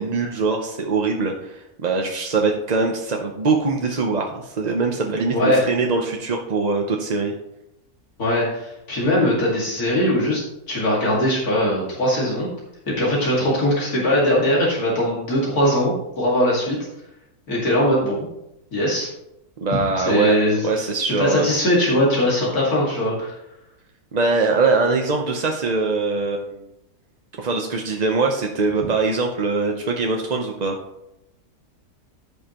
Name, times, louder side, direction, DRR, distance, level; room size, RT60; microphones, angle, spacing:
voice 1, 0.0-7.3 19.6-20.4 20.6-21.5 24.1-26.6 27.4-30.8, right 3 dB, 40° right, 2 dB, 0.6 m, -22 dB
voice 2, 5.3-5.6 8.2-10.4 10.7-12.5 12.9-16.8 17.5-18.2 18.7-19.1 19.7-20.7 21.1-23.3, left 1 dB, 75° left, -5 dB, 2.6 m, -20 dB
14.5 x 5.5 x 3.0 m, 0.87 s
omnidirectional pair, 1.6 m